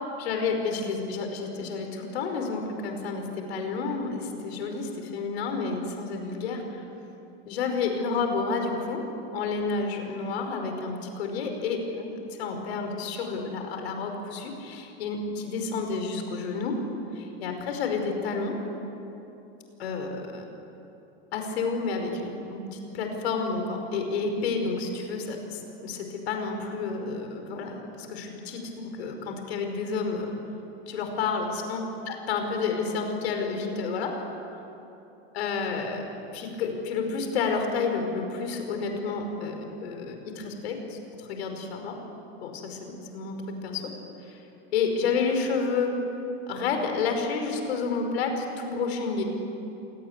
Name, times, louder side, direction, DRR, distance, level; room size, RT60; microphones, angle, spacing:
voice 1, 0.2-6.8 7.5-9.0 9.3-16.8 17.1-18.6 19.8-20.4 21.3-30.3 30.9-34.1 35.3-36.1 36.3-42.0 42.4-43.9 44.2-44.4 44.7-45.9 46.5-49.2, left 4 dB, 85° left, 4 dB, 5.2 m, -30 dB
28.0 x 18.0 x 9.8 m, 3.0 s
supercardioid pair, 175°, 31 cm